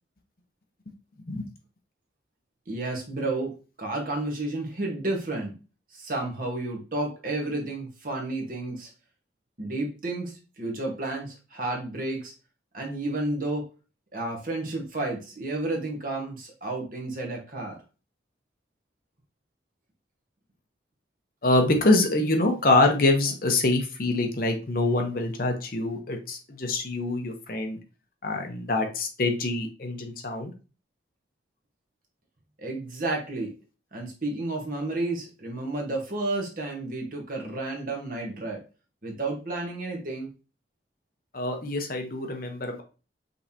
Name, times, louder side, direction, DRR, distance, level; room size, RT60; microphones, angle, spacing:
voice 1, 2.7-5.5 5.9-8.9 9.6-12.3 12.7-13.7 14.1-17.8 32.6-33.5 33.9-38.6 39.0-40.3, right 2 dB, 50° right, 1 dB, 1.3 m, -31 dB
voice 2, 21.4-27.8 28.2-30.5 41.3-42.8, left 2 dB, 50° left, 3 dB, 0.9 m, -25 dB
5.3 x 3.4 x 2.8 m, 0.33 s
head